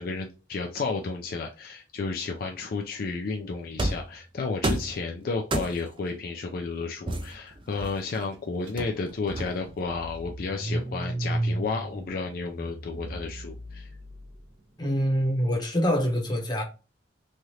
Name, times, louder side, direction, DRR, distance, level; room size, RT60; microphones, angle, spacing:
voice 1, 0.0-13.9, left 4 dB, 55° left, 0.4 m, -32 dB
sound 1, 3.8-4.1 4.6-5.0 5.5-6.0 7.1-8.2 8.8-9.8, right 2 dB, 30° right, 0.4 m, -30 dB
Car / Engine starting, 8.7-8.8 9.1-14.3, right 1 dB, 75° right, 1.1 m, -34 dB
voice 2, 14.8-16.6, equal, 25° left, 0.8 m, -25 dB
3.2 x 2.4 x 2.7 m
head